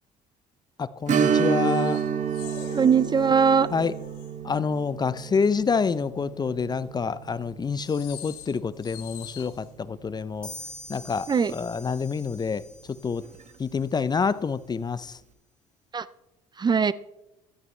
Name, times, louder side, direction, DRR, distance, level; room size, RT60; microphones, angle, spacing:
voice 1, 0.8-2.0 3.7-3.9 4.4-10.5 10.9-12.6 12.9-13.2 13.6-15.2, left 5 dB, 25° left, 0.5 m, -27 dB
Strum, 1.1-10.3 10.6-10.7 13.2-13.4 13.9-14.0, right 7 dB, 50° right, 1.1 m, -30 dB
sound 1, 1.5-4.5 4.8-6.2 6.6-6.8 7.6-9.8 10.6-10.7 10.9-11.1 11.6-11.9, left 10 dB, 85° left, 1.6 m, -43 dB
voice 2, 2.7-3.7 11.3-11.5 15.9-16.0 16.6-16.9, right 6 dB, 25° right, 0.5 m, -20 dB
sound 2, 10.4-14.0, left 1 dB, 5° left, 2.5 m, -45 dB
15.0 x 12.5 x 3.2 m
supercardioid pair, 80°, 16 cm